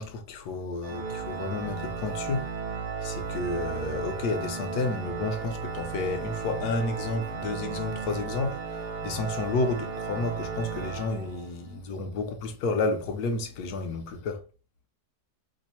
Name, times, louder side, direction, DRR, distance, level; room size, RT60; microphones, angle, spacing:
voice 1, 0.0-2.5 3.0-14.4, left 3 dB, 70° left, 1.2 m, -31 dB
Organ, 0.8-11.7, right 5 dB, 75° right, 1.3 m, -35 dB
3.3 x 2.0 x 4.2 m
omnidirectional pair, 1.9 m